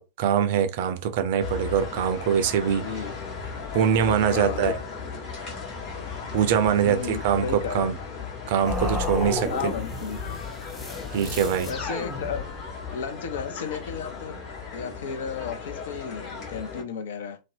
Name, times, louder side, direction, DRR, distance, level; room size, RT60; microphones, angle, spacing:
voice 1, 0.0-2.8 3.7-4.8 6.3-8.0 8.5-9.5 11.1-11.7, right 8 dB, 50° right, 0.4 m, -23 dB
sound 1, 1.4-16.8, left 5 dB, 35° left, 1.1 m, -36 dB
voice 2, 2.8-3.1 4.3-4.7 6.8-7.9 9.5-10.4 11.7-12.5 12.9-14.4 14.7-17.4, left 6 dB, 60° left, 0.4 m, -33 dB
sound 2, 8.7-12.8, left 2 dB, 20° left, 0.6 m, -32 dB
2.6 x 2.0 x 2.6 m
figure-of-eight pair, 90°, 0 cm